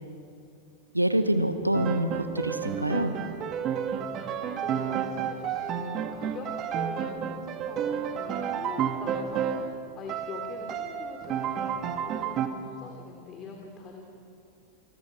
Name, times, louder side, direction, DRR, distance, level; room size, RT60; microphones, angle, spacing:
voice 1, 0.9-3.2, right 1 dB, 85° right, 9 dB, 1.7 m, -26 dB
Piano, 1.7-9.8 10.1-12.5, right 8 dB, 35° right, 1.9 m, -31 dB
voice 2, 4.4-6.5 6.7-14.0, left 4 dB, 30° left, 2 dB, 3.2 m, -43 dB
29.0 x 26.5 x 6.1 m, 2.6 s
figure-of-eight pair, 90°, 0 cm